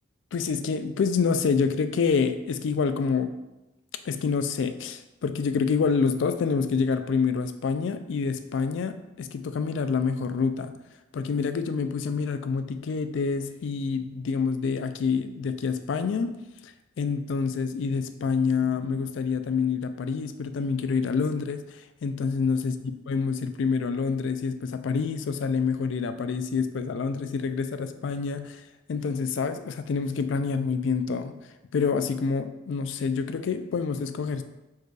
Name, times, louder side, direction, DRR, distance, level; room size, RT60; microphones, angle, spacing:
voice 1, 0.3-3.4 4.0-10.7 11.1-16.4 16.6-16.7 17.0-22.7 23.1-28.6 28.9-31.4 31.7-34.4, left 5 dB, 65° left, 10 dB, 0.3 m, -27 dB
4.6 x 2.3 x 4.7 m, 0.97 s
head